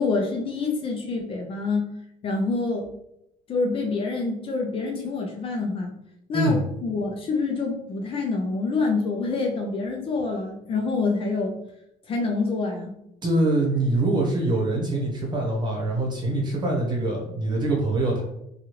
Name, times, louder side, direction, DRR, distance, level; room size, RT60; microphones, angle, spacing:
voice 1, 0.0-1.8 2.2-2.9 3.5-5.9 6.3-11.5 12.1-12.9, left 3 dB, 35° left, 1 dB, 0.5 m, -26 dB
voice 2, 13.2-18.2, right 2 dB, 30° right, -1 dB, 1.0 m, -24 dB
3.3 x 2.3 x 2.9 m, 0.78 s
cardioid pair, 135°, 15 cm